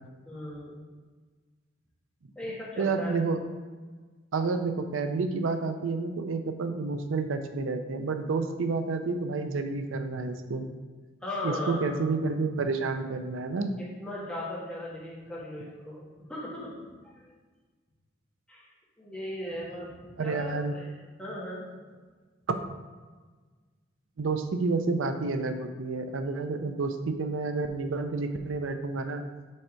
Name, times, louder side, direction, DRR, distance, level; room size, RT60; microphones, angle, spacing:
voice 1, 0.2-0.7 2.4-3.1 11.2-12.0 14.0-16.0 16.3-17.3 18.5-18.7 19.0-19.9 20.2-20.9 21.2-21.6, left 1 dB, 5° left, -9 dB, 2.0 m, -37 dB
voice 2, 2.8-3.4 4.3-10.7 11.4-13.7 20.2-20.7 24.2-29.2, right 3 dB, 90° right, 7 dB, 0.5 m, -29 dB
6.3 x 4.5 x 4.4 m, 1.4 s
head